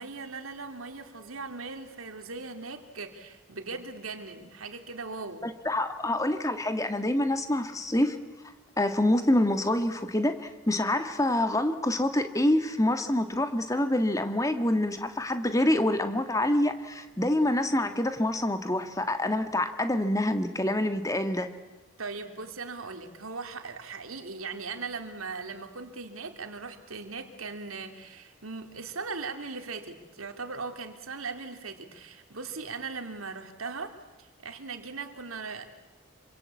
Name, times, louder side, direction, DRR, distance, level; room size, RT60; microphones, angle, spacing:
voice 1, 0.0-5.5 22.0-35.7, right 4 dB, 85° right, 6 dB, 2.9 m, -39 dB
voice 2, 5.4-8.2 8.8-21.5, left 1 dB, 15° left, 8 dB, 1.7 m, -26 dB
27.5 x 25.5 x 8.5 m, 1.1 s
head